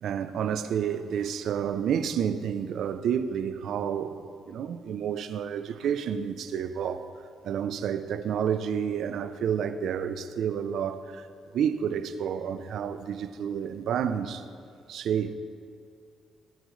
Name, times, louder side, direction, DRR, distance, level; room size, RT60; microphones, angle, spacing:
voice 1, 0.0-7.1 7.4-11.3 11.5-14.4 14.9-15.3, right 8 dB, 70° right, 0.6 m, -30 dB
18.5 x 10.0 x 3.3 m
cardioid pair, 90°, 0 cm